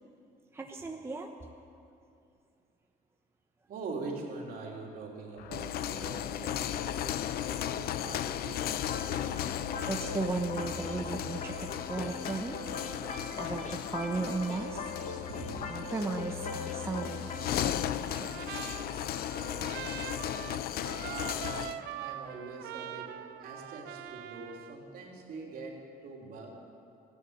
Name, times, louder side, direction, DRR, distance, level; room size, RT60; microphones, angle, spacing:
voice 1, 0.5-1.3 9.8-12.6 13.0-14.9 15.7-17.2 17.5-18.6, right 3 dB, 15° right, 2 dB, 1.0 m, -36 dB
voice 2, 3.7-8.8 12.1-12.2 13.3-13.5 15.2-15.8 21.0-26.6, right 3 dB, 60° right, -1 dB, 3.3 m, -43 dB
sound 1, 5.4-21.8, left 11 dB, 65° left, 0.6 m, -36 dB
sound 2, 8.8-17.7, left 4 dB, 45° left, 1.5 m, -39 dB
Trumpet, 18.0-24.8, right 11 dB, 80° right, 0.7 m, -43 dB
15.5 x 11.0 x 8.1 m, 2.6 s
cardioid pair, 110°, 17 cm